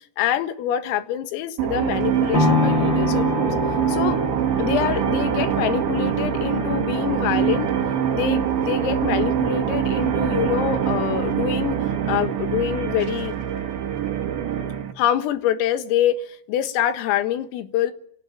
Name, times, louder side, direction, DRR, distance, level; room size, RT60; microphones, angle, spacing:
voice 1, 0.2-3.4 3.9-4.2 4.6-7.7 8.1-13.4 15.0-17.9, left 11 dB, 85° left, 4.3 m, -25 dB
sound 1, 1.6-14.9, right 9 dB, 65° right, 4.3 m, -24 dB
sound 2, 2.3-10.4 10.9-11.0, left 4 dB, 25° left, 3.7 m, -28 dB
29.5 x 17.5 x 9.2 m
omnidirectional pair, 5.9 m